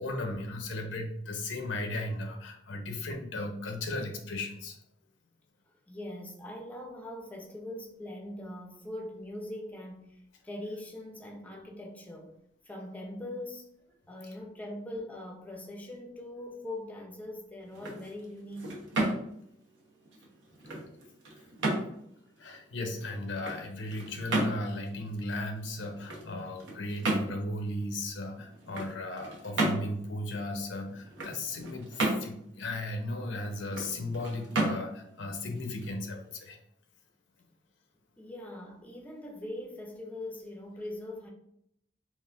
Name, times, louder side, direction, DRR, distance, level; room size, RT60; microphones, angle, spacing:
voice 1, 0.0-4.8 22.4-36.6, left 2 dB, 90° left, 0.6 m, -36 dB
voice 2, 5.9-12.3 12.6-18.8 38.2-41.3, left 1 dB, 10° left, 0.5 m, -42 dB
sound 1, 17.6-36.5, right 2 dB, 80° right, 0.8 m, -35 dB
3.6 x 2.5 x 2.3 m
head